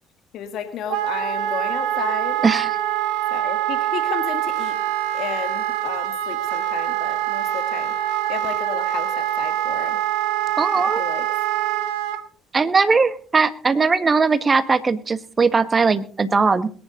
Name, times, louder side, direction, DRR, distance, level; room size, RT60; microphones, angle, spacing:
voice 1, 0.3-2.4 3.3-4.8 5.1-8.0 8.3-10.0 10.7-11.3, left 9 dB, 60° left, 8 dB, 1.5 m, -32 dB
Wind instrument woodwind instrument, 0.9-12.2, right 12 dB, 75° right, 1.3 m, -24 dB
voice 2, 10.6-11.0 12.5-16.7, right 4 dB, 30° right, 12 dB, 1.5 m, -19 dB
21.5 x 10.5 x 3.8 m, 0.42 s
hypercardioid pair, 55°, 0 cm